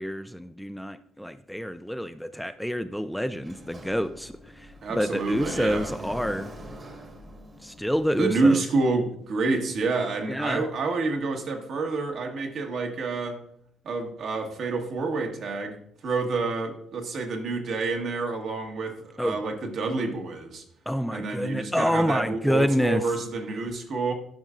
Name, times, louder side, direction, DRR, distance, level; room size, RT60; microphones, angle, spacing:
voice 1, 0.0-6.5 7.6-8.6 10.3-10.6 19.2-19.4 20.9-23.0, equal, ahead, 10 dB, 0.3 m, -28 dB
Sliding door, 3.4-8.4, right 1 dB, 35° right, 1.4 m, -42 dB
voice 2, 4.8-5.9 8.1-13.4 13.8-15.8 16.0-20.6 21.1-24.1, right 3 dB, 60° right, 2 dB, 1.4 m, -28 dB
10.5 x 5.4 x 2.5 m, 0.68 s
cardioid pair, 95°, 0 cm